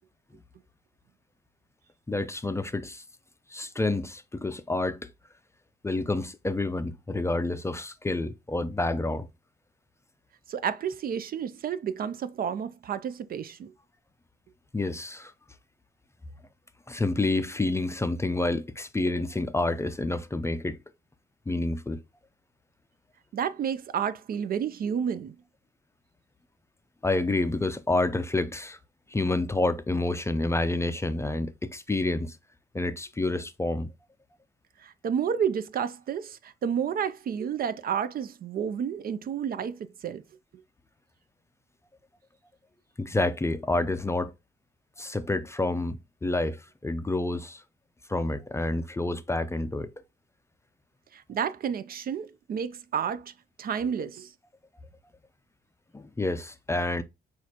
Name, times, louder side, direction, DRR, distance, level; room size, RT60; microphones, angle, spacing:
voice 1, 2.1-3.0 3.5-5.0 5.8-9.3 14.7-15.3 16.9-20.8 21.5-22.0 27.0-28.8 29.1-32.4 32.7-33.9 43.0-44.3 45.0-47.6 48.1-49.9 55.9-57.0, left 2 dB, 15° left, 0.4 m, -28 dB
voice 2, 10.5-13.7 23.3-25.4 34.8-40.2 51.1-53.3 53.6-54.3, right 8 dB, 50° right, 0.4 m, -30 dB
6.2 x 2.5 x 2.8 m
cardioid pair, 90°, 20 cm